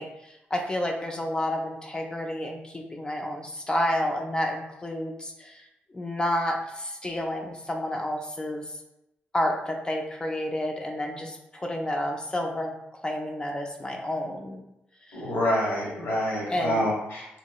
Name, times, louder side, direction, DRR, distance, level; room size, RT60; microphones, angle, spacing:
voice 1, 0.0-5.7 5.9-8.6 9.3-12.7 13.0-14.6 15.1-15.2 16.5-16.9, left 1 dB, 20° left, 2 dB, 0.3 m, -30 dB
voice 2, 15.1-17.3, equal, 80° left, -3 dB, 1.1 m, -27 dB
2.9 x 2.8 x 2.3 m, 0.88 s
cardioid pair, 85°, 4 cm